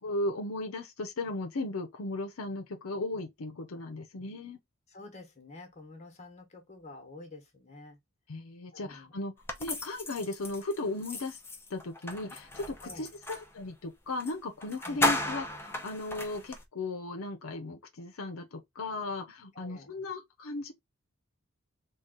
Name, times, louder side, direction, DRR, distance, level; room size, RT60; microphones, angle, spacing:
voice 1, 0.0-4.6 8.3-9.3 9.6-11.4 11.7-20.7, left 2 dB, 80° left, 0.6 m, -36 dB
voice 2, 4.9-8.0 8.7-9.2 12.8-13.1 14.8-15.1 19.5-19.9, left 2 dB, 30° left, 1.2 m, -48 dB
sound 1, 9.5-13.5 14.2-14.3 14.6-16.6, left 1 dB, 10° left, 0.6 m, -35 dB
3.7 x 2.3 x 3.8 m
head